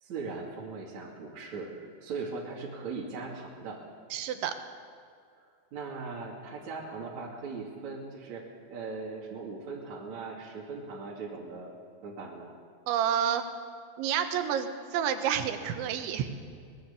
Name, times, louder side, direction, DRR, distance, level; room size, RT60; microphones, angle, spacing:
voice 1, 0.0-1.7 2.0-3.8 5.7-8.4 8.7-11.7 12.0-12.5, right 4 dB, 45° right, -3 dB, 3.3 m, -39 dB
voice 2, 4.1-4.5 12.9-13.5 14.0-16.3, right 9 dB, 90° right, 7 dB, 3.7 m, -29 dB
23.0 x 20.5 x 7.1 m, 2.2 s
omnidirectional pair, 5.2 m